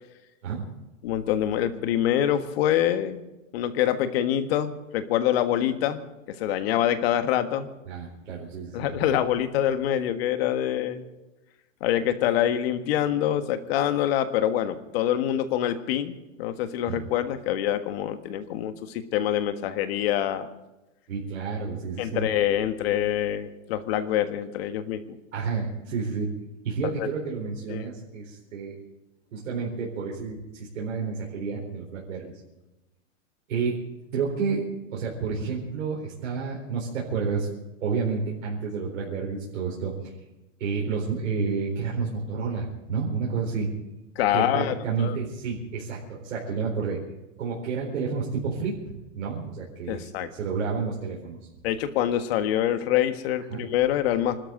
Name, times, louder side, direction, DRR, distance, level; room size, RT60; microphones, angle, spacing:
voice 1, 1.0-3.2 3.5-6.0 6.4-7.7 8.7-11.0 11.8-20.5 22.0-25.0 27.0-27.1 27.7-27.9 44.1-44.8 45.0-45.2 49.9-50.3 51.6-54.4, left 11 dB, 50° left, 9 dB, 1.6 m, -25 dB
voice 2, 7.8-9.1 16.9-17.0 21.1-22.3 25.3-26.3 26.6-28.8 29.3-32.3 33.5-33.7 34.1-34.6 34.9-37.5 37.8-39.9 40.6-43.7 44.3-47.0 47.4-51.4 53.5-53.6, right 5 dB, 85° right, -3 dB, 4.4 m, -30 dB
26.0 x 13.0 x 3.9 m, 1.0 s
supercardioid pair, 155°, 39 cm